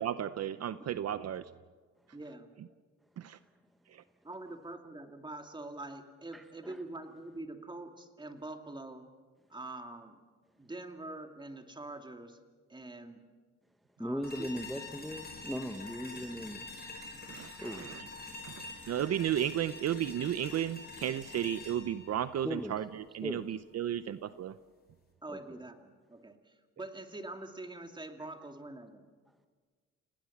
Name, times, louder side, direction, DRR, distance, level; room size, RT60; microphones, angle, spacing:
voice 1, 0.0-1.4 3.2-3.4 3.9-4.0 17.2-18.0 18.4-22.8 23.1-24.5, right 10 dB, 55° right, 14 dB, 0.7 m, -34 dB
voice 2, 2.1-2.5 4.2-9.0 9.5-10.2 10.6-12.4 12.7-13.2 14.0-14.5 25.2-29.1, right 2 dB, 15° right, 5 dB, 2.6 m, -45 dB
voice 3, 6.3-6.8 14.0-16.7 17.6-17.9 22.4-22.8 23.2-23.5 25.3-25.6, equal, ahead, 8 dB, 1.1 m, -38 dB
sound 1, 14.2-23.3, left 3 dB, 30° left, 5.5 m, -46 dB
29.5 x 18.0 x 7.3 m, 1.5 s
cardioid pair, 90°, 30 cm